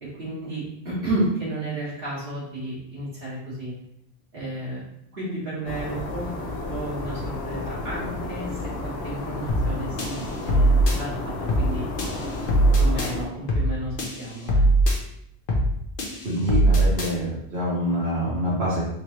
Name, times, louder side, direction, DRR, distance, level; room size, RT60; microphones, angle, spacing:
voice 1, 0.0-3.7 4.3-4.8 5.1-11.9 12.8-14.7, right 1 dB, 65° right, -10 dB, 1.8 m, -32 dB
sound 1, 5.7-13.3, left 2 dB, 85° left, 1.1 m, -32 dB
sound 2, 9.5-9.7 10.0-11.0 11.5-11.7 12.0-13.1 13.5-13.7 14.0-15.0 15.5-15.7 16.0-17.1, right 1 dB, 60° left, 0.9 m, -21 dB
voice 2, 16.2-18.9, equal, 85° right, -8 dB, 1.3 m, -26 dB
3.8 x 3.0 x 2.9 m, 0.76 s
omnidirectional pair, 1.0 m